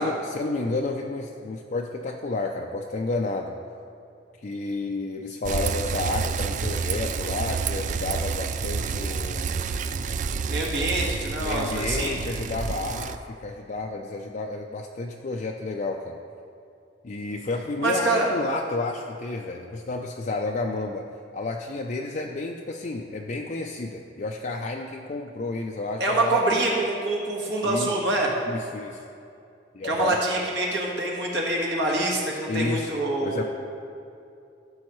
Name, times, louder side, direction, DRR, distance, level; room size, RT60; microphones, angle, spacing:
voice 1, 0.0-3.5 4.4-9.6 10.5-10.9 11.4-16.2 17.0-21.1 21.3-26.4 27.6-27.9 28.5-29.0 29.7-30.2 32.5-32.9 33.2-33.4, left 3 dB, 45° left, 1 dB, 0.4 m, -31 dB
Bicycle, 5.4-13.2, right 5 dB, 45° right, 0.3 m, -29 dB
voice 2, 10.5-12.1 17.8-18.3 26.0-28.3 29.8-33.4, right 2 dB, 70° right, -2 dB, 1.7 m, -25 dB
14.5 x 6.3 x 3.1 m, 2.6 s
head